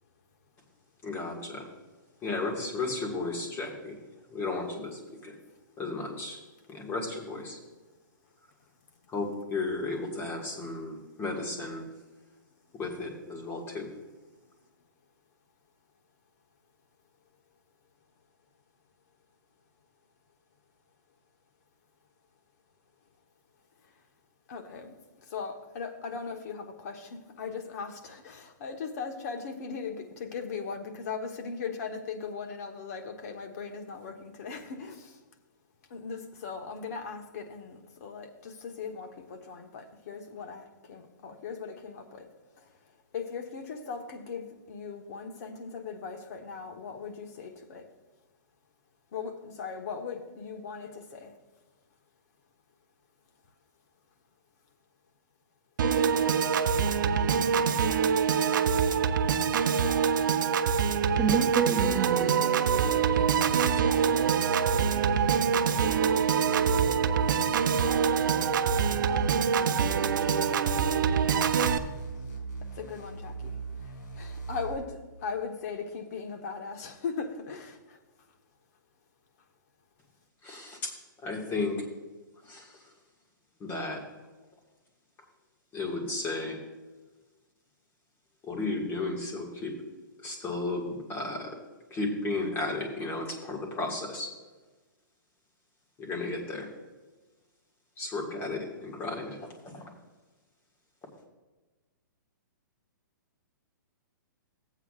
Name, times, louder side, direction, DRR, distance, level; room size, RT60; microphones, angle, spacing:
voice 1, 1.0-1.7 2.2-4.0 4.3-5.3 5.8-6.4 6.7-7.6 9.1-11.8 12.8-13.9 80.4-80.9 81.2-81.8 82.5-82.6 83.6-84.0 85.7-86.6 88.5-89.7 90.2-91.5 91.9-94.3 96.0-96.7 98.0-99.4 99.7-99.8, left 3 dB, 20° left, 0 dB, 1.8 m, -34 dB
voice 2, 24.5-35.2 35.9-42.3 42.6-42.7 43.1-47.9 49.1-51.3 72.7-78.0, left 5 dB, 50° left, 5 dB, 1.2 m, -39 dB
Piano / Organ, 55.8-71.8, right 6 dB, 70° right, 0.7 m, -25 dB
voice 3, 61.2-63.3, right 6 dB, 10° right, 3 dB, 0.4 m, -31 dB
sound 1, 63.5-74.7, right 4 dB, 70° left, 2.9 m, -39 dB
15.0 x 8.2 x 2.4 m, 1.2 s
hypercardioid pair, 155°, 11 cm